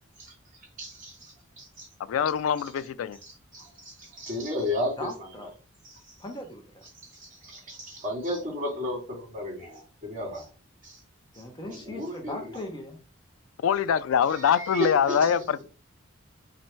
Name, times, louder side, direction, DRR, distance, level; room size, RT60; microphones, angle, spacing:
voice 1, 0.8-1.9 3.5-5.1 5.8-6.0 7.1-10.5 10.8-11.0 11.6-12.3 14.6-15.3, left 1 dB, 40° right, 2.7 m, -33 dB
voice 2, 2.1-3.2 13.6-15.6, left 8 dB, 90° left, 0.3 m, -24 dB
voice 3, 5.0-5.5 6.2-6.8 11.3-13.0, left 1 dB, 20° left, 0.7 m, -39 dB
4.2 x 2.6 x 4.4 m
head